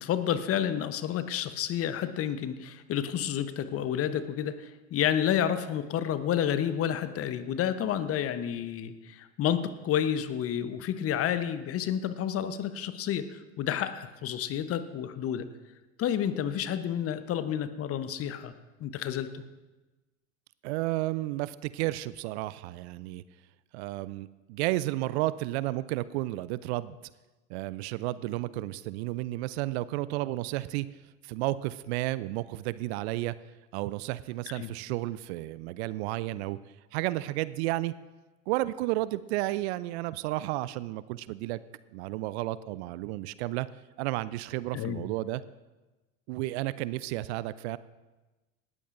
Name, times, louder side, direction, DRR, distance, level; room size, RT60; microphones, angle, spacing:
voice 1, 0.0-15.5 16.0-18.5 18.8-19.4 34.5-34.7 44.7-45.0, left 9 dB, 35° left, 12 dB, 0.9 m, -30 dB
voice 2, 20.6-23.2 23.7-27.0 27.5-30.9 31.2-33.3 33.7-36.6 36.9-37.9 38.5-41.6 41.9-43.7 44.0-45.4 46.3-47.8, right 17 dB, 55° right, 18 dB, 0.5 m, -32 dB
18.5 x 13.5 x 2.6 m, 1.1 s
hypercardioid pair, 80°, 40 cm